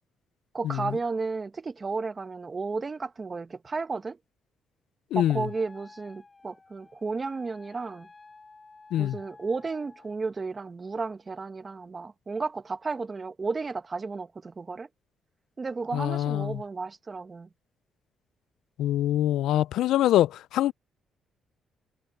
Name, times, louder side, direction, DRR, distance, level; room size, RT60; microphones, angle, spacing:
voice 1, 0.5-4.2 5.1-8.1 9.0-14.9 15.6-17.5, right 4 dB, 30° right, 1.6 m, -33 dB
voice 2, 5.1-5.5 8.9-9.2 15.9-16.6 18.8-20.7, left 13 dB, 85° left, 0.3 m, -24 dB
Wind instrument woodwind instrument, 5.3-10.2, left 3 dB, 25° left, 7.5 m, -53 dB
cardioid pair, 90°, 0 cm